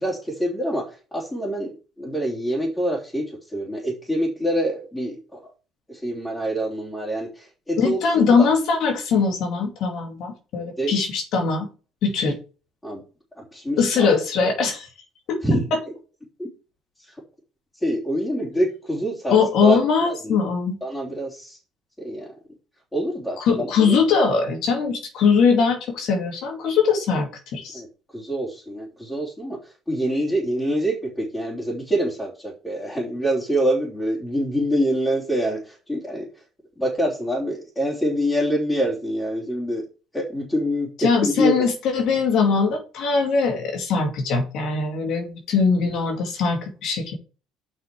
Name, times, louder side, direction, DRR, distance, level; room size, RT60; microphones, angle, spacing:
voice 1, 0.0-0.8 1.1-1.7 2.0-3.2 3.5-5.2 6.0-7.3 7.7-8.0 10.8-10.9 12.8-13.0 13.5-14.2 15.4-15.6 17.8-19.4 19.6-19.8 20.3-20.4 20.8-21.5 22.0-22.3 22.9-24.0 27.7-27.9 28.1-29.6 29.9-30.9 31.3-35.6 35.9-36.2 36.8-39.8 40.1-40.9 41.2-41.6, equal, 10° left, -5 dB, 3.5 m, -25 dB
voice 2, 7.8-11.7 12.0-12.3 13.8-14.9 15.3-15.4 15.7-15.8 19.3-20.8 23.4-27.8 41.0-47.1, left 5 dB, 65° left, 3 dB, 2.5 m, -21 dB
8.2 x 5.6 x 4.8 m, 0.34 s
cardioid pair, 115°, 0 cm